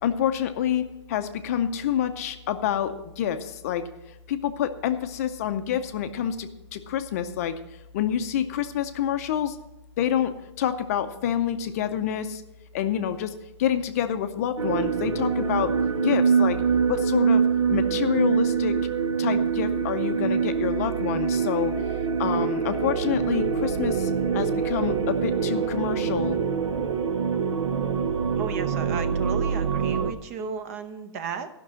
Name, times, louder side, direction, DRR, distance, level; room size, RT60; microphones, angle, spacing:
voice 1, 0.0-3.8 4.3-7.6 7.9-9.6 10.0-12.4 12.7-13.3 13.6-15.7 16.0-16.6 16.9-17.4 17.7-18.8 19.2-21.7 22.2-26.4, left 9 dB, 30° left, 9 dB, 0.6 m, -27 dB
sound 1, 14.6-30.1, right 6 dB, 80° right, 1.0 m, -24 dB
voice 2, 28.3-31.5, right 5 dB, 30° right, 10 dB, 0.7 m, -34 dB
12.5 x 6.0 x 7.4 m, 0.95 s
hypercardioid pair, 160°, 15 cm